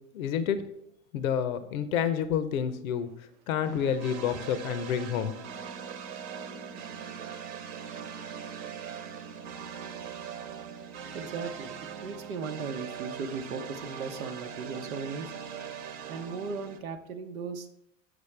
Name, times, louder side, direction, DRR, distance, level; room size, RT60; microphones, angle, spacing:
voice 1, 0.1-0.6 1.1-3.1 3.5-5.4, left 8 dB, 85° left, 12 dB, 0.7 m, -29 dB
sound 1, 3.6-16.8, right 7 dB, 55° right, 1.0 m, -41 dB
voice 2, 8.2-8.6 11.1-15.3 16.1-17.7, right 5 dB, 90° right, 7 dB, 0.9 m, -37 dB
6.8 x 6.2 x 3.3 m, 0.76 s
hypercardioid pair, 115°, 41 cm